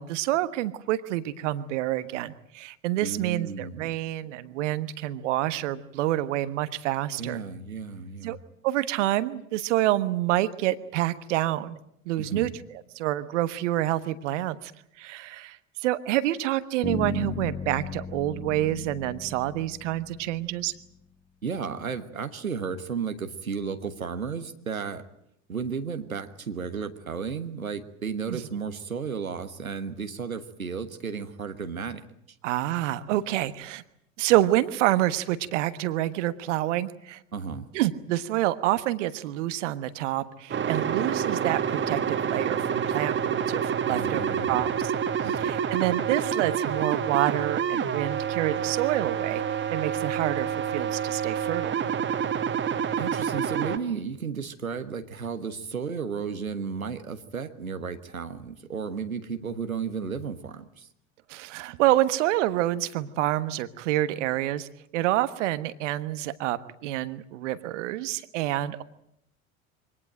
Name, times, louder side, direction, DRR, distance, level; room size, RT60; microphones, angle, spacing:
voice 1, 0.0-7.4 8.2-8.4 8.6-11.8 12.0-12.5 13.0-14.7 15.0-20.7 28.3-28.4 32.4-33.8 34.2-37.2 37.7-44.2 44.5-44.9 45.4-49.4 49.7-51.7 61.3-64.7 64.9-68.8, right 15 dB, 60° right, 14 dB, 1.3 m, -27 dB
voice 2, 3.0-3.9 7.2-8.4 12.2-12.6 21.4-25.0 25.5-32.0 37.3-37.7 43.9-44.7 45.2-45.6 53.0-60.9, right 6 dB, 85° right, 9 dB, 1.3 m, -33 dB
Bass guitar, 16.8-20.8, left 5 dB, 15° left, 1.6 m, -36 dB
sound 1, 40.5-53.8, right 8 dB, 30° right, 1.8 m, -28 dB
24.0 x 18.5 x 9.0 m, 0.75 s
figure-of-eight pair, 75°, 41 cm